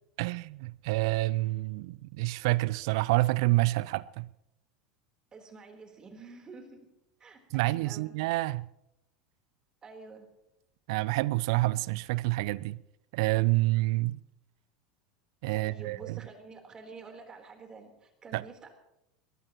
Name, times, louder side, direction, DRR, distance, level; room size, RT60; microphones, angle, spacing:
voice 1, 0.2-4.3 7.5-8.7 10.9-12.8 13.1-14.2 15.4-16.2 18.3-18.4, right 20 dB, 60° right, 0.5 m, -28 dB
voice 2, 5.3-6.9 7.2-8.1 9.8-10.3 15.5-18.7, right 4 dB, 25° right, 3.9 m, -48 dB
22.5 x 19.5 x 3.1 m
figure-of-eight pair, 75°, 3 cm